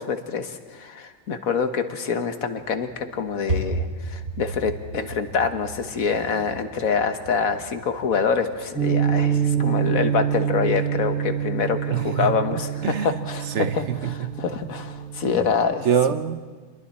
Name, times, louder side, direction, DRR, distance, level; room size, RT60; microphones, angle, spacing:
voice 1, 0.0-13.8 14.1-15.9, left 6 dB, 80° left, 1.7 m, -26 dB
sound 1, 2.6-14.0, right 2 dB, 75° right, 3.1 m, -36 dB
sound 2, 8.7-15.5, right 8 dB, 5° right, 4.4 m, -26 dB
voice 2, 9.5-9.9 11.9-13.2 13.5-14.3 15.8-16.5, right 8 dB, 60° right, 1.0 m, -26 dB
28.5 x 22.5 x 4.3 m
omnidirectional pair, 1.5 m